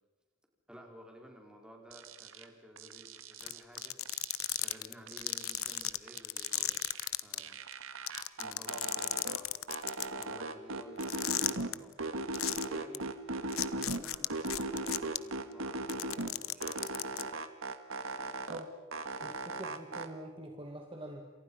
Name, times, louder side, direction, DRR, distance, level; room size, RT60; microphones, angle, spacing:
voice 1, 0.7-3.9 4.5-6.8 7.2-7.6 8.4-9.6 10.1-17.4, equal, 5° right, 1 dB, 4.8 m, -54 dB
sound 1, 1.9-2.4 2.8-4.8 5.1-7.1 7.4-9.4 9.7-11.7 12.0-14.0 14.3-16.3 16.6-18.6 18.9-20.1, right 2 dB, 70° right, 1.9 m, -38 dB
sound 2, 3.4-7.4 7.7-7.8 8.1-10.2 11.0-11.7 12.3-12.6 12.9-13.0 13.5-15.2 15.8-17.2, left 15 dB, 80° left, 0.9 m, -34 dB
voice 2, 19.2-21.3, right 1 dB, 25° right, 2 dB, 2.3 m, -45 dB
29.0 x 27.5 x 5.6 m, 1.2 s
head